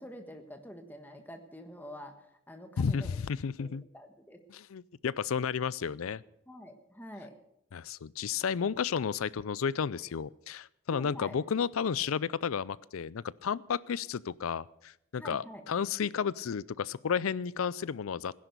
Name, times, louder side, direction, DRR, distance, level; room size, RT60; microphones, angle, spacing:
voice 1, 0.0-3.2 3.6-4.4 6.5-7.4 10.9-11.4 15.2-15.6, equal, 10° left, 6 dB, 1.4 m, -46 dB
voice 2, 2.8-3.8 4.5-6.2 7.7-18.4, left 6 dB, 85° left, 21 dB, 0.5 m, -32 dB
16.5 x 10.5 x 6.7 m, 0.79 s
head